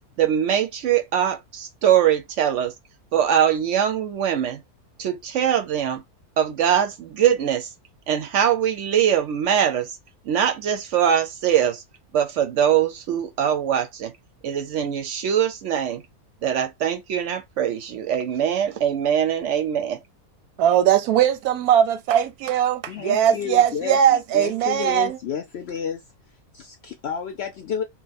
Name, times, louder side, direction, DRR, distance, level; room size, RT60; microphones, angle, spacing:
voice 1, 0.2-2.7 3.1-4.6 5.0-6.0 6.4-7.7 8.1-10.0 10.2-11.8 12.1-14.1 14.4-16.0 16.4-20.0, right 9 dB, 65° right, 0.8 m, -22 dB
voice 2, 20.6-25.2, right 10 dB, 85° right, 1.1 m, -20 dB
voice 3, 22.9-26.0 26.5-27.8, left 7 dB, 65° left, 0.6 m, -31 dB
2.9 x 2.1 x 4.0 m
omnidirectional pair, 1.6 m